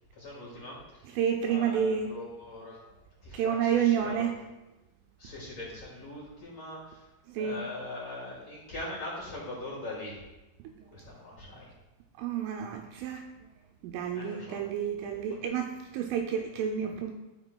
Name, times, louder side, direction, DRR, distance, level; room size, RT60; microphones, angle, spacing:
voice 1, 0.2-1.2 1.4-2.8 3.2-4.3 5.2-7.1 7.3-10.2 10.9-11.7 14.1-14.6 15.0-15.5, left 1 dB, 45° left, -7 dB, 2.3 m, -41 dB
voice 2, 1.1-2.1 3.3-4.3 7.3-7.6 10.8-10.9 12.2-13.2 13.8-17.1, right 8 dB, 85° right, 3 dB, 2.9 m, -29 dB
14.0 x 5.8 x 2.2 m, 1.0 s
omnidirectional pair, 5.9 m